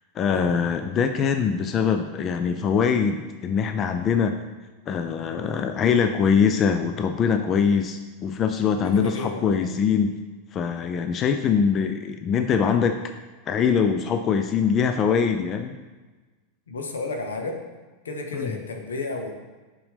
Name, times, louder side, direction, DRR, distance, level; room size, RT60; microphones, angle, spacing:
voice 1, 0.2-4.4 4.9-10.1 10.5-13.0 13.5-15.8 18.3-18.5, left 6 dB, 35° left, 7 dB, 0.4 m, -23 dB
voice 2, 8.8-9.6 16.7-17.6 18.0-19.3, left 3 dB, 80° left, 3 dB, 1.0 m, -32 dB
6.8 x 5.3 x 3.5 m, 1.3 s
hypercardioid pair, 95°, 0 cm